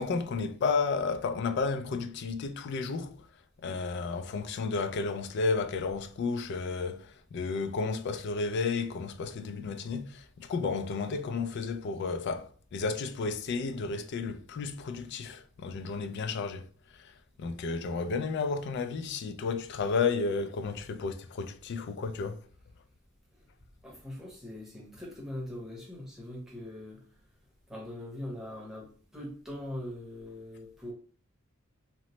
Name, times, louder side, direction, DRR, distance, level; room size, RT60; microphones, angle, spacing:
voice 1, 0.0-3.3 3.6-22.5, left 4 dB, 55° left, 0.3 m, -32 dB
voice 2, 23.8-27.0 27.7-30.9, left 1 dB, ahead, 0.8 m, -41 dB
2.9 x 2.0 x 3.0 m
head